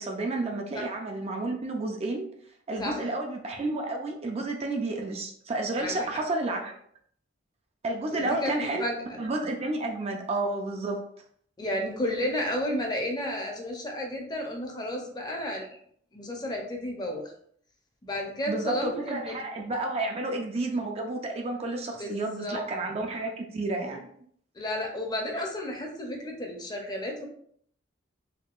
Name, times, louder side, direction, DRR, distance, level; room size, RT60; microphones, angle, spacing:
voice 1, 0.0-2.3 2.7-6.7 7.8-8.8 9.2-11.0 18.5-24.0, right 2 dB, 30° right, 2 dB, 0.4 m, -31 dB
voice 2, 8.1-9.0 11.6-15.8 16.1-17.2 18.0-19.4 22.0-22.6 24.6-27.3, left 1 dB, 20° left, 1 dB, 0.6 m, -32 dB
3.5 x 2.7 x 2.4 m, 0.63 s
head